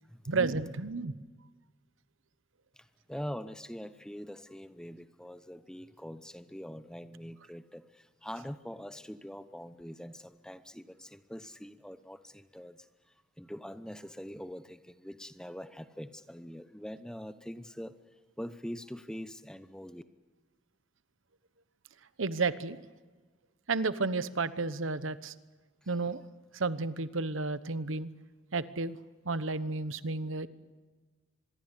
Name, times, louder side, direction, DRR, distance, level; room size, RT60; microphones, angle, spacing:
voice 1, 0.3-1.1 22.2-22.8 23.7-25.3 25.9-26.2 26.5-28.1 28.5-29.0 29.2-30.5, right 3 dB, 80° right, 14 dB, 1.0 m, -32 dB
voice 2, 2.8-12.9 13.4-18.0 18.4-20.0 25.8-25.9, equal, 5° left, 11 dB, 0.9 m, -44 dB
25.5 x 22.0 x 8.3 m, 1.3 s
head